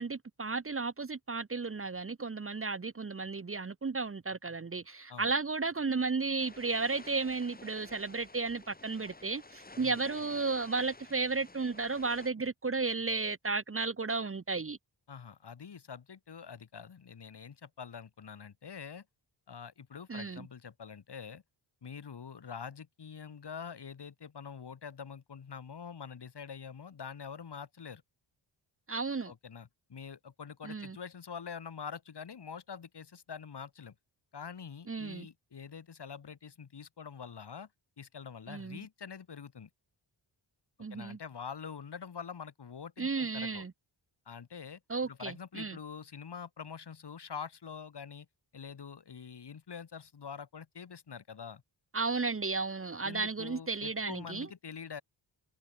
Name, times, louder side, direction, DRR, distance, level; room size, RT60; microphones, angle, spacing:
voice 1, 0.0-14.8 20.1-20.4 28.9-29.3 30.6-31.0 34.9-35.3 38.5-38.8 40.8-41.2 43.0-43.7 44.9-45.8 51.9-54.5, right 4 dB, 30° right, 1.1 m, -34 dB
sound 1, 6.4-12.3, left 2 dB, 20° left, 3.5 m, -52 dB
voice 2, 15.1-19.0 19.5-21.4 21.8-28.0 29.3-33.9 34.3-37.7 38.0-39.7 40.9-43.6 44.3-48.3 48.5-51.6 53.0-55.0, left 6 dB, 60° left, 4.7 m, -45 dB
wide cardioid pair, 130°, 46 cm